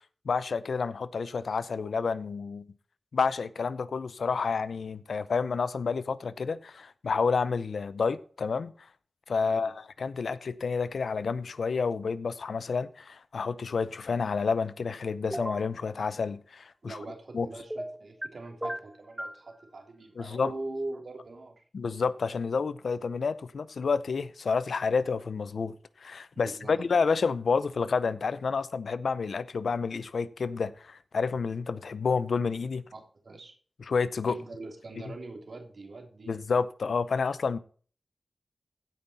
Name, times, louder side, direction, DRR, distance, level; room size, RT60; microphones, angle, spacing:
voice 1, 0.2-2.6 3.1-8.7 9.3-17.0 17.3-17.5 20.2-20.5 21.7-32.8 33.8-34.4 36.3-37.6, left 5 dB, 85° left, 0.6 m, -29 dB
voice 2, 9.4-9.7 16.8-21.6 26.3-26.8 32.9-33.5 34.2-36.3, right 2 dB, 75° right, 2.9 m, -42 dB
sound 1, 15.3-15.7 17.7-18.3 18.6-19.4, right 1 dB, 10° right, 0.5 m, -35 dB
16.0 x 5.5 x 4.2 m
cardioid pair, 40°, 0 cm